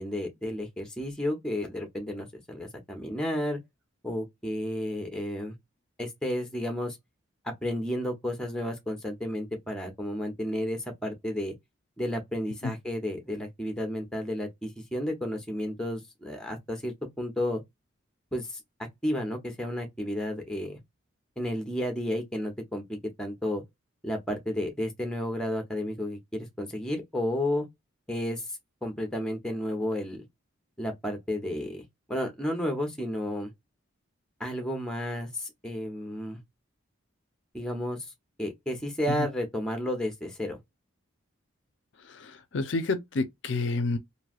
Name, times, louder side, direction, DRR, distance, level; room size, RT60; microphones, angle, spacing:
voice 1, 0.0-3.6 4.0-5.5 6.0-7.0 7.6-11.5 12.0-17.6 18.3-18.6 19.0-20.8 21.4-23.6 24.0-27.7 28.1-28.4 28.8-30.2 30.8-33.5 34.4-36.4 37.5-38.1 38.4-40.6, left 1 dB, 5° left, 0.8 m, -32 dB
voice 2, 42.1-44.0, left 3 dB, 60° left, 0.5 m, -29 dB
3.1 x 2.5 x 2.3 m
head